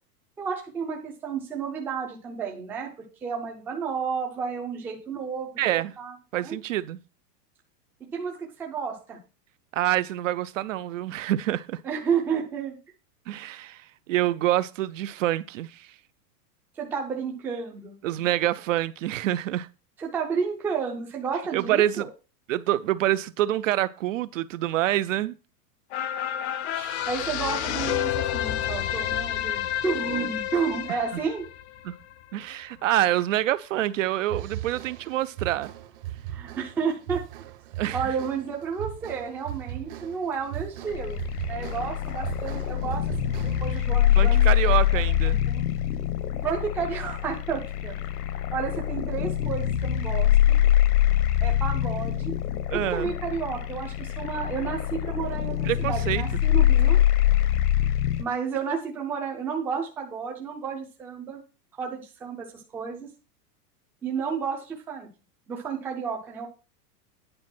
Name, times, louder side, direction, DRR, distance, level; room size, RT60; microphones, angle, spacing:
voice 1, 0.4-5.6 6.0-6.1 6.4-6.6 8.1-9.2 11.8-12.8 16.8-18.0 20.0-22.1 27.1-31.4 36.3-37.3 37.9-44.4 44.9-45.1 45.5-45.6 46.4-48.0 48.5-50.6 51.4-52.3 52.7-57.0 58.2-61.4 61.7-63.1 64.0-65.1 65.5-66.5, right 6 dB, 5° right, 0.5 m, -31 dB
voice 2, 5.6-5.9 6.3-7.0 9.7-11.8 13.3-15.9 18.0-19.7 21.5-22.0 22.5-25.3 26.7-27.0 31.8-31.9 32.3-35.7 37.8-38.0 44.2-45.4 52.7-53.1 55.7-56.2, right 14 dB, 55° right, 0.5 m, -26 dB
sound 1, 25.9-32.6 33.0-33.1, left 11 dB, 45° left, 0.7 m, -30 dB
sound 2, 34.3-43.8, right 12 dB, 35° right, 0.8 m, -38 dB
sound 3, 40.9-58.2, left 12 dB, 70° left, 1.3 m, -24 dB
9.7 x 5.1 x 5.9 m
supercardioid pair, 170°, 48 cm